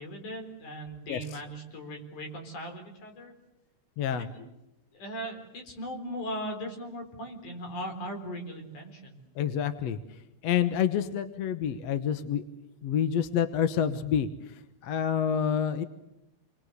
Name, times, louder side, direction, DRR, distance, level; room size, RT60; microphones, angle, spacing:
voice 1, 0.0-3.3 4.2-4.5 4.9-9.2, equal, 80° left, 3 dB, 5.6 m, -38 dB
voice 2, 4.0-4.3 9.4-10.0 10.4-12.4 12.8-14.3 14.8-15.8, left 9 dB, 65° left, 10 dB, 2.1 m, -27 dB
28.5 x 22.0 x 8.1 m, 0.85 s
omnidirectional pair, 3.5 m